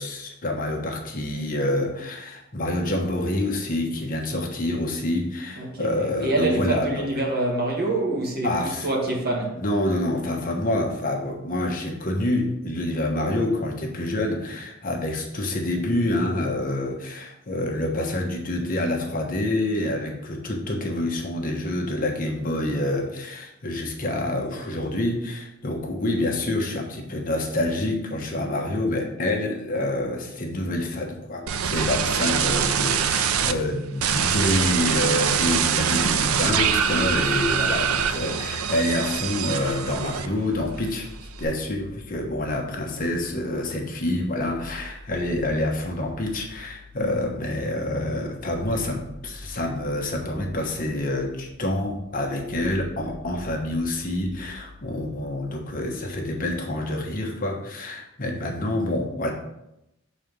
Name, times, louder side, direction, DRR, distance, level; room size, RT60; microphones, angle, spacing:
voice 1, 0.0-7.1 8.4-8.9 9.6-41.1 41.4-59.3, left 1 dB, 40° left, 1.1 m, -27 dB
voice 2, 5.6-9.6, right 2 dB, 45° right, 1.6 m, -26 dB
sound 1, 31.5-33.5 34.0-40.6 40.9-41.4, right 7 dB, 90° right, 0.5 m, -24 dB
sound 2, 41.0-56.5, left 1 dB, ahead, 0.6 m, -45 dB
6.3 x 4.2 x 5.3 m
head